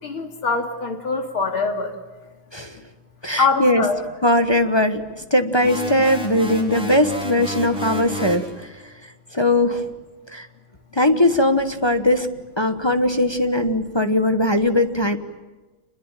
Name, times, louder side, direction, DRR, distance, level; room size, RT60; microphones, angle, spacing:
voice 1, 0.0-2.0 3.4-4.0, left 4 dB, 85° left, 5 dB, 3.6 m, -23 dB
voice 2, 3.2-3.8 4.2-5.0 5.3-8.5 9.3-9.8 10.3-10.5 11.0-12.3 12.6-15.2, left 1 dB, 20° left, 7 dB, 0.8 m, -19 dB
sound 1, 5.6-8.5, left 1 dB, ahead, 4.3 m, -30 dB
27.5 x 21.5 x 9.1 m, 1.2 s
omnidirectional pair, 2.2 m